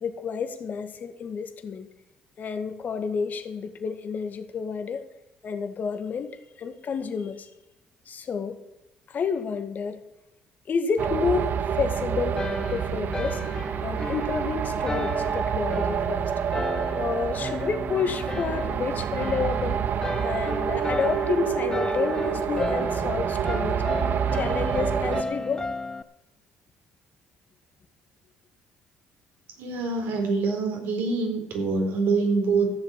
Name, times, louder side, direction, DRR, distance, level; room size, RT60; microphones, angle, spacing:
voice 1, 0.0-1.9 2.4-5.0 5.4-7.5 8.1-8.6 9.1-10.0 10.7-12.4 12.7-13.4 13.8-16.2 16.9-19.8 20.2-23.8 24.3-25.7, left 5 dB, 50° left, 9 dB, 1.9 m, -30 dB
sound 1, 11.0-25.2, right 8 dB, 55° right, 0.8 m, -28 dB
sound 2, 12.4-26.0, left 2 dB, 20° left, 1.1 m, -34 dB
voice 2, 29.6-32.7, right 4 dB, 70° right, 3 dB, 4.2 m, -25 dB
14.5 x 7.4 x 8.3 m, 0.95 s
hypercardioid pair, 60°, 4 cm